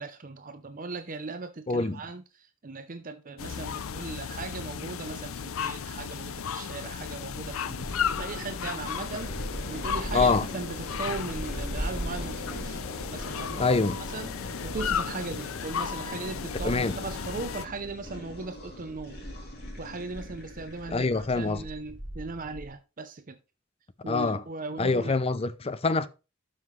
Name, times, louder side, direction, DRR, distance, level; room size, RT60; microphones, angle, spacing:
voice 1, 0.0-12.8 13.1-13.7 14.1-19.2 19.8-23.4 24.0-25.1, right 3 dB, 40° right, 0.7 m, -38 dB
voice 2, 1.7-2.0 10.1-10.5 13.6-14.0 16.6-17.0 20.9-21.6 24.1-24.4 24.8-26.1, left 3 dB, 30° left, 0.5 m, -25 dB
sound 1, 3.4-17.7, left 7 dB, 80° left, 0.5 m, -35 dB
sound 2, 7.0-22.7, equal, 5° left, 4.9 m, -40 dB
sound 3, 7.9-21.7, left 1 dB, 50° left, 3.0 m, -43 dB
12.0 x 5.7 x 3.2 m
head